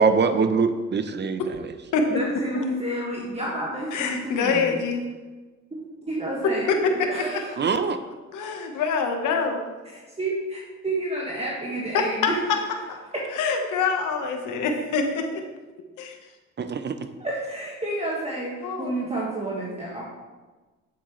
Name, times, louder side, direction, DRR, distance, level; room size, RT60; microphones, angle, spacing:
voice 1, 0.0-1.4 7.6-8.0 16.6-17.0, right 5 dB, 35° right, 10 dB, 0.7 m, -22 dB
voice 2, 2.1-4.8 5.7-6.6 7.0-7.5 9.9-10.6 10.8-12.4 13.1-13.2 17.2-20.1, right 1 dB, 20° right, -4 dB, 1.8 m, -30 dB
voice 3, 3.9-5.0 6.7-7.4 8.3-9.6 11.9-12.6 12.9-13.0 13.3-15.4 16.0-16.2 18.6-19.0, left 4 dB, 85° left, 4 dB, 1.3 m, -25 dB
9.1 x 7.8 x 3.2 m, 1.3 s
cardioid pair, 90°, 30 cm